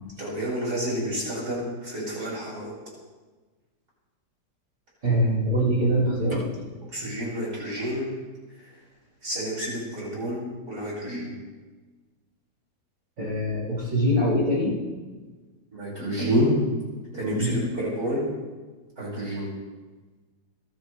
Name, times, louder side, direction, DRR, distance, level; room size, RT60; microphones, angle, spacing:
voice 1, 0.2-2.7 6.9-8.1 9.2-10.4 10.7-11.3 15.7-16.5 17.1-18.2 19.0-19.5, equal, 55° right, -6 dB, 6.0 m, -29 dB
voice 2, 5.0-6.5 7.0-7.1 13.2-14.8 17.3-17.6, equal, 85° right, -7 dB, 7.4 m, -23 dB
27.5 x 12.5 x 3.3 m, 1.3 s
omnidirectional pair, 2.0 m